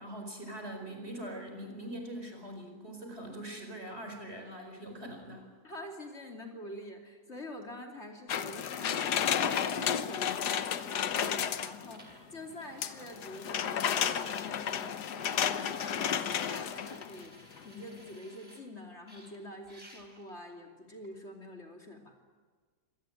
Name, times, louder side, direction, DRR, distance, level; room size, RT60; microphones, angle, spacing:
voice 1, 0.0-5.5, right 1 dB, 40° right, 4 dB, 5.1 m, -42 dB
voice 2, 5.6-22.1, left 1 dB, 40° left, 2 dB, 3.1 m, -46 dB
sound 1, 8.3-12.0 12.8-17.2 17.6-17.7, left 8 dB, 80° left, 1.6 m, -32 dB
sound 2, 10.2-10.4 11.4-11.5 11.9-18.6 19.1-20.3 21.0-21.1, equal, 20° right, 3.6 m, -57 dB
25.5 x 19.0 x 9.1 m, 1.5 s
omnidirectional pair, 1.8 m